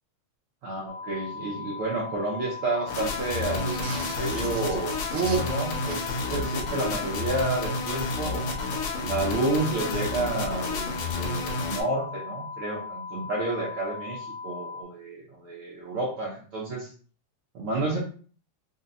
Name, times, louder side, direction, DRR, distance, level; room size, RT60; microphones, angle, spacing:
voice 1, 0.6-8.5 9.0-16.9 17.5-18.0, right 2 dB, 80° right, -4 dB, 1.2 m, -30 dB
sound 1, 0.9-14.8, left 5 dB, 90° left, 2.2 m, -38 dB
sound 2, 2.9-11.8, left 3 dB, 70° left, 1.9 m, -31 dB
sound 3, 3.5-6.3, right 2 dB, 65° right, 1.8 m, -40 dB
5.6 x 2.2 x 2.5 m, 0.42 s
omnidirectional pair, 3.4 m